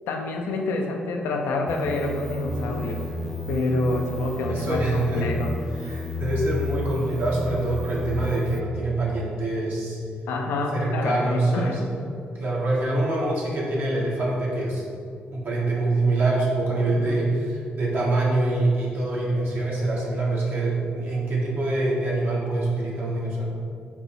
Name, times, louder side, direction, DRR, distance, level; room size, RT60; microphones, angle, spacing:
voice 1, 0.1-3.0 3.5-5.6 10.3-11.8 16.9-17.2, left 2 dB, 80° left, 2 dB, 0.5 m, -27 dB
sound 1, 1.7-8.6, left 1 dB, 10° left, 0.4 m, -32 dB
voice 2, 4.5-5.3 5.8-10.0 10.7-11.8 12.3-14.8 15.3-23.5, right 2 dB, 60° right, -5 dB, 1.3 m, -25 dB
5.2 x 2.0 x 4.6 m, 2.4 s
supercardioid pair, 55°, 4 cm